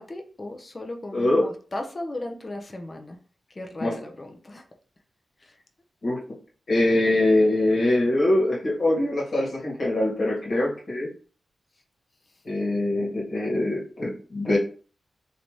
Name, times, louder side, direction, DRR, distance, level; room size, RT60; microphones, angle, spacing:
voice 1, 0.0-3.2 3.6-4.6 5.4-5.5, left 1 dB, 30° left, 3 dB, 0.6 m, -36 dB
voice 2, 1.1-1.5 3.8-4.0 6.0-6.2 6.7-11.1 12.4-14.6, left 1 dB, 55° left, -4 dB, 1.7 m, -23 dB
3.2 x 2.7 x 3.1 m, 0.39 s
wide cardioid pair, 85°, 0 cm